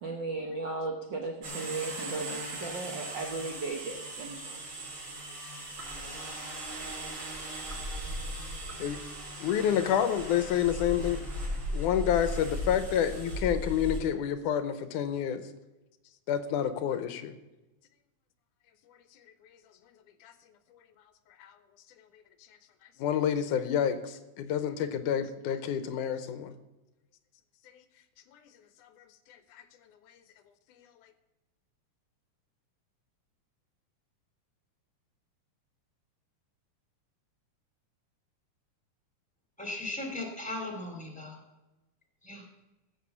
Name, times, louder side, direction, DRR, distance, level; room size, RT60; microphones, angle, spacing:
voice 1, 0.0-4.6, right 3 dB, 65° right, 3 dB, 1.1 m, -36 dB
sound 1, 1.4-14.0, right 1 dB, 40° right, 4.0 m, -38 dB
voice 2, 9.4-11.3 11.7-15.4 16.3-17.4 20.2-20.3 21.4-21.5 23.0-26.5 27.7-27.8 28.3-28.4 28.8-28.9 29.3-29.6, left 9 dB, 85° left, 10 dB, 2.3 m, -29 dB
voice 3, 39.6-41.4 42.2-42.5, left 2 dB, 5° left, 1 dB, 2.2 m, -37 dB
14.5 x 7.0 x 7.0 m, 1.0 s
omnidirectional pair, 3.5 m